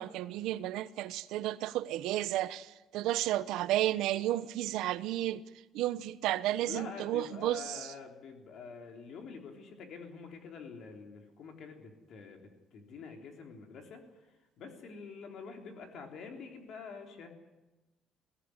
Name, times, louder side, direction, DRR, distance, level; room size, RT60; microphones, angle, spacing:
voice 1, 0.0-5.4 5.7-7.9, right 14 dB, 85° right, 0.9 m, -32 dB
voice 2, 6.6-17.3, left 5 dB, 50° left, 3.6 m, -47 dB
22.0 x 17.0 x 9.8 m
cardioid pair, 180°, 0 cm